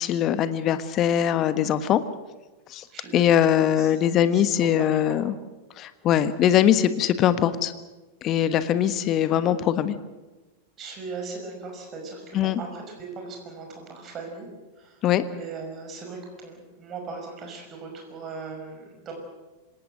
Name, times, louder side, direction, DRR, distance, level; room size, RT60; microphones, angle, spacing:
voice 1, 0.0-2.0 2.7-2.8 3.1-5.3 5.8-7.7 8.2-9.9 12.3-12.6 15.0-15.2, left 10 dB, 35° left, 13 dB, 1.4 m, -21 dB
voice 2, 2.9-5.0 10.8-14.5 14.8-15.0 15.3-19.1, right 4 dB, 30° right, 2 dB, 5.9 m, -39 dB
26.0 x 18.0 x 7.8 m, 1.1 s
figure-of-eight pair, 90°, 0 cm